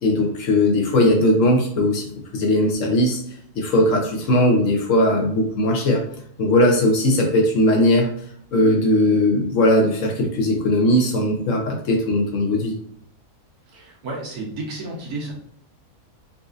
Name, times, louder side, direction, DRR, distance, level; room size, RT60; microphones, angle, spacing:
voice 1, 0.0-2.1 2.3-3.2 3.5-6.0 6.4-8.1 8.5-12.7, left 1 dB, 65° left, 1 dB, 1.0 m, -18 dB
voice 2, 13.7-15.3, right 2 dB, 80° right, -2 dB, 1.4 m, -32 dB
4.1 x 2.6 x 2.4 m, 0.64 s
omnidirectional pair, 1.6 m